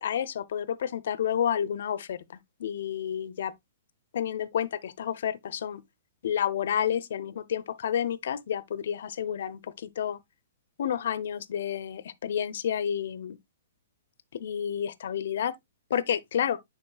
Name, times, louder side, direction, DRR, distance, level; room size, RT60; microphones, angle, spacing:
voice 1, 0.0-3.5 4.1-5.8 6.2-10.2 10.8-13.4 14.3-15.5 15.9-16.6, left 9 dB, 65° left, 0.7 m, -30 dB
10.5 x 4.2 x 2.3 m
hypercardioid pair, 140°, 0 cm